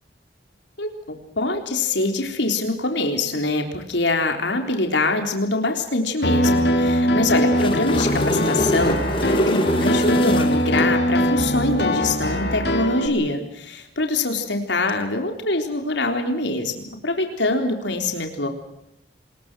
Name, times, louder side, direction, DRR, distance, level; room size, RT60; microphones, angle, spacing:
voice 1, 0.8-9.0 9.5-18.5, left 2 dB, 75° left, 4 dB, 3.8 m, -24 dB
Piano, 6.2-13.1, equal, 60° left, 3.3 m, -21 dB
sound 1, 7.3-10.9 14.7-14.9, left 1 dB, 30° left, 3.1 m, -24 dB
27.0 x 21.0 x 6.3 m, 0.83 s
head